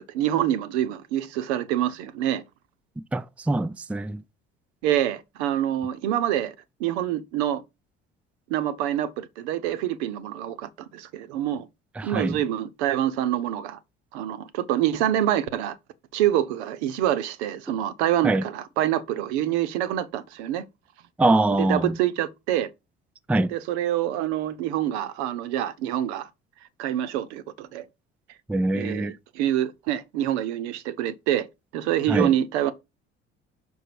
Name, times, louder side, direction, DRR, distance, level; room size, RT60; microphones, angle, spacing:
voice 1, 0.0-2.4 4.8-6.5 6.8-7.6 8.5-11.7 12.0-13.8 14.1-15.8 16.1-20.6 21.6-22.7 23.4-26.3 26.8-27.8 28.7-31.5 31.7-32.7, right 12 dB, 70° right, 0.8 m, -26 dB
voice 2, 3.1-4.2 12.0-12.4 18.2-18.4 21.2-22.0 23.3-23.5 28.5-29.2 32.1-32.3, right 2 dB, 5° right, 0.4 m, -23 dB
5.4 x 5.4 x 4.7 m
hypercardioid pair, 55°, 34 cm